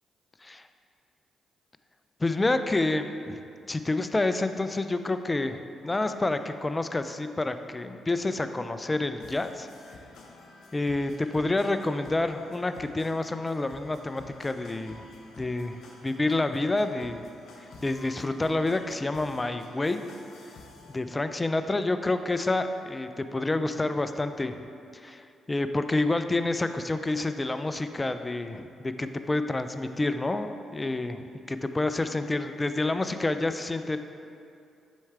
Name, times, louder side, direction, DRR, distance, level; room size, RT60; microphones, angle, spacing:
voice 1, 2.2-3.4 3.7-9.7 10.7-15.1 15.4-17.2 17.8-20.0 20.9-24.6 24.9-34.0, left 2 dB, 25° left, 9 dB, 0.4 m, -28 dB
sound 1, 9.2-21.0, left 3 dB, 65° left, 0.7 m, -50 dB
7.1 x 4.5 x 3.3 m, 2.5 s
hypercardioid pair, 45°, 0 cm